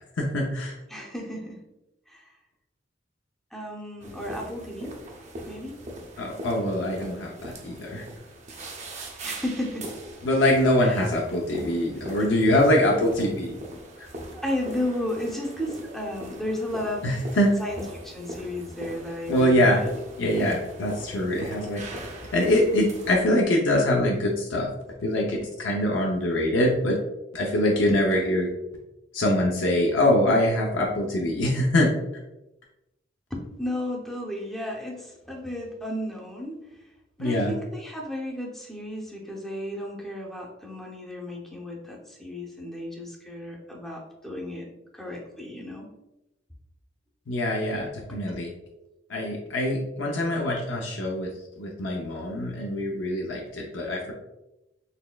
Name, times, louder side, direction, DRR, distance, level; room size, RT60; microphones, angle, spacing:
voice 1, 0.2-0.7 6.2-8.0 10.2-13.5 17.0-17.6 19.3-19.8 20.2-21.8 22.3-24.7 25.0-27.0 27.3-28.5 29.1-31.9 37.2-37.5 47.3-48.5 49.1-51.3 51.6-54.1, left 1 dB, 75° left, -1 dB, 0.5 m, -23 dB
voice 2, 0.9-1.6 2.1-2.3 3.5-5.0 5.5-5.8 7.2-7.6 9.2-9.9 10.8-11.1 14.3-19.9 27.9-28.0 33.3-36.8 37.2-45.9 48.1-48.2, left 1 dB, ahead, -2 dB, 0.6 m, -34 dB
sound 1, 4.0-23.2, right 1 dB, 40° right, 0.6 m, -40 dB
4.1 x 3.2 x 2.2 m, 0.94 s
head